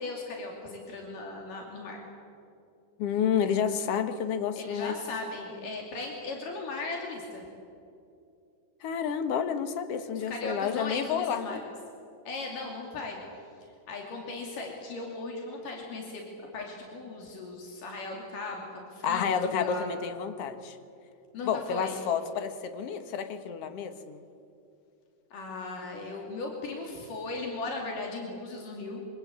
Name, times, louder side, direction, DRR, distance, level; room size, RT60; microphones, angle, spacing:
voice 1, 0.0-2.0 4.6-7.5 10.1-11.6 12.3-13.2 13.9-20.0 21.3-22.0 25.3-29.0, left 3 dB, 85° left, 0 dB, 4.4 m, -37 dB
voice 2, 3.0-5.0 8.8-11.6 19.0-20.8 21.4-24.2, left 7 dB, 55° left, 8 dB, 2.2 m, -30 dB
26.5 x 24.5 x 8.6 m, 2.6 s
omnidirectional pair, 3.7 m